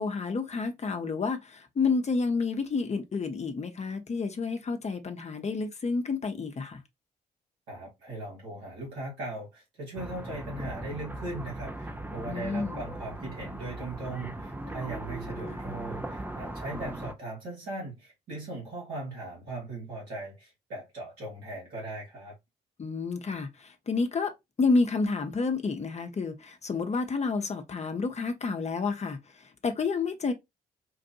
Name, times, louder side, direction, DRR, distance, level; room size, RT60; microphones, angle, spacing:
voice 1, 0.0-6.8 12.3-12.8 15.4-15.6 22.8-24.3 24.6-30.3, left 4 dB, 35° left, 0.8 m, -30 dB
voice 2, 7.7-22.4, right 2 dB, 75° right, 2.0 m, -39 dB
sound 1, 10.0-17.1, right 1 dB, 10° right, 0.6 m, -38 dB
4.6 x 2.5 x 2.6 m
figure-of-eight pair, 40°, 20 cm